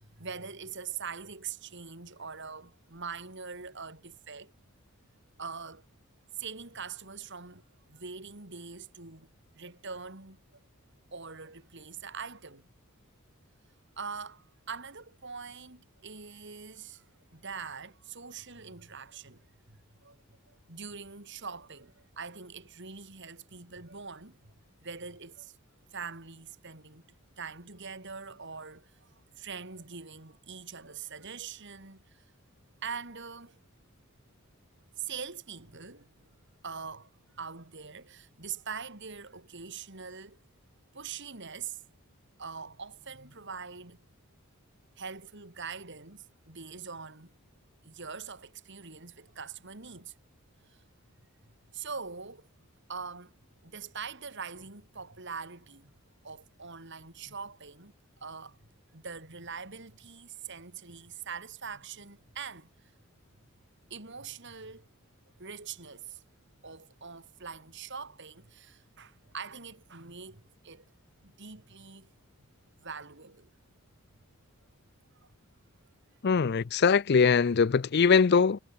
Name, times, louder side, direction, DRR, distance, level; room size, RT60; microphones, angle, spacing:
voice 1, 0.0-4.5 5.4-5.9 6.4-9.3 9.5-10.4 11.1-12.7 14.0-17.0 17.3-20.2 20.5-24.5 24.8-25.5 25.9-27.0 27.4-29.1 29.4-32.2 32.8-33.6 35.0-36.1 36.6-37.1 37.3-40.4 40.9-41.8 42.4-44.0 45.0-47.3 47.8-50.1 50.7-50.8 51.7-52.5 52.9-53.4 53.6-55.9 56.2-58.6 58.9-62.7 63.9-64.9 65.4-66.2 66.6-70.8 71.2-72.1 72.8-73.5 75.2-75.3, right 5 dB, 55° right, 3.4 m, -43 dB
voice 2, 76.2-78.6, left 5 dB, 45° left, 0.4 m, -22 dB
head